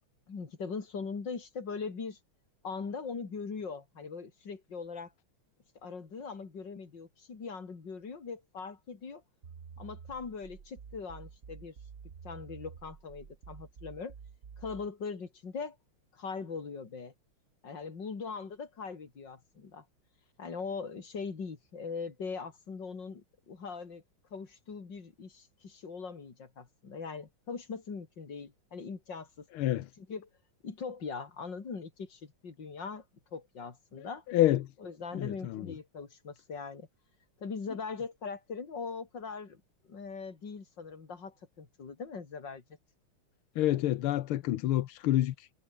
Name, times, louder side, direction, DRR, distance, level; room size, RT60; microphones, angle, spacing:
voice 1, 0.3-2.2 2.6-5.1 5.8-9.2 9.8-11.8 12.2-14.1 14.6-15.8 16.1-17.1 17.6-19.9 20.4-24.0 24.3-29.5 30.0-30.3 30.6-33.0 33.3-34.2 34.8-36.9 37.4-39.6 39.9-42.6, left 5 dB, 60° left, 3.7 m, -41 dB
sound 1, 9.4-14.9, right 6 dB, 40° right, 1.6 m, -50 dB
voice 2, 29.5-29.9 34.3-34.7 35.1-35.6 43.6-45.6, left 14 dB, 90° left, 1.7 m, -28 dB
omnidirectional pair, 2.3 m